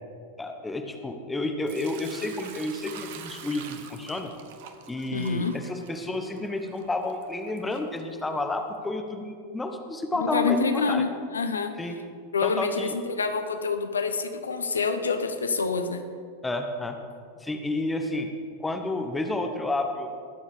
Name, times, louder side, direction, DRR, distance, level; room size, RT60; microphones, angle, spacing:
voice 1, 0.4-4.3 4.9-11.0 11.8-12.0 12.4-12.9 16.4-17.0 17.4-18.3 18.6-20.1, left 2 dB, 10° left, 5 dB, 1.2 m, -30 dB
Sink (filling or washing) / Liquid, 1.7-8.6, right 8 dB, 50° right, 1.0 m, -46 dB
voice 2, 5.1-5.5 10.2-11.7 12.3-16.0, left 4 dB, 75° left, 8 dB, 0.9 m, -27 dB
20.5 x 7.2 x 5.0 m, 2.2 s
figure-of-eight pair, 90°, 0 cm